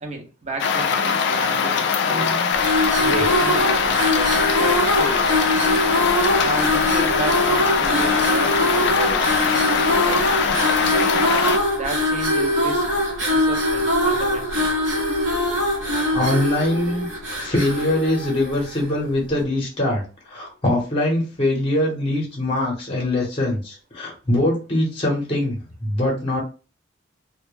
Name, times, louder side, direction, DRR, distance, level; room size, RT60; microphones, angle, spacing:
voice 1, 0.0-2.4 2.8-5.3 6.4-11.1 11.8-12.8 13.3-14.7, right 2 dB, 35° right, 0.5 m, -33 dB
sound 1, 0.6-11.6, left 6 dB, 65° left, 0.3 m, -21 dB
voice 2, 2.0-2.5 3.0-3.3 16.1-26.4, left 1 dB, 30° left, 0.8 m, -23 dB
sound 2, 2.5-18.9, left 1 dB, 70° right, 0.8 m, -22 dB
2.2 x 2.1 x 3.1 m
head